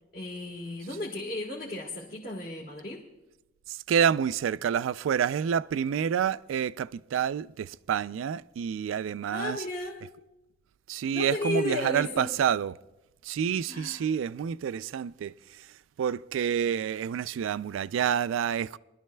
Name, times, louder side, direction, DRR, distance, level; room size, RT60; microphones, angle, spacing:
voice 1, 0.1-3.0 9.3-10.0 11.1-12.4 13.7-14.1, left 1 dB, 45° left, 1.5 m, -34 dB
voice 2, 3.9-9.6 10.9-12.7 13.3-15.3 16.0-18.8, right 8 dB, 85° right, 0.3 m, -28 dB
24.0 x 12.5 x 2.2 m
head